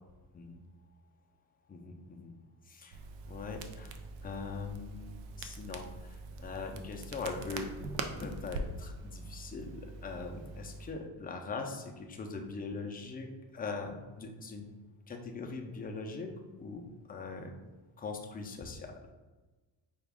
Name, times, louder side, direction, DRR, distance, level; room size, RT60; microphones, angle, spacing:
voice 1, 1.7-2.3 2.7-3.0 3.2-3.9 4.2-7.7 8.2-14.7 15.1-16.3 16.6-17.5 18.0-18.9, left 4 dB, 20° left, 3 dB, 0.4 m, -41 dB
Crackle, 2.9-10.9, right 3 dB, 90° right, 0.6 m, -43 dB
4.9 x 2.3 x 3.4 m, 1.2 s
cardioid pair, 130°, 45 cm